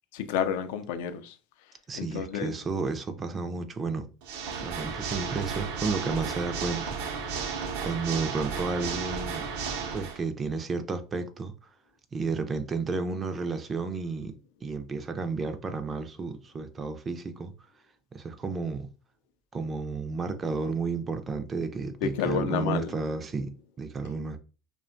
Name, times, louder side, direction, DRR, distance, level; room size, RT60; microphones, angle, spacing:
voice 1, 0.1-1.4 1.9-2.5 22.0-22.9, left 7 dB, 75° left, 0.4 m, -30 dB
voice 2, 1.9-4.1 4.6-7.5 7.8-9.5 9.9-11.5 12.1-14.3 14.6-17.5 18.1-18.9 19.5-24.4, right 4 dB, 25° right, 0.4 m, -32 dB
Water / Mechanisms, 4.2-10.2, right 5 dB, 70° right, 0.6 m, -33 dB
2.7 x 2.2 x 2.5 m
supercardioid pair, 115°, 0 cm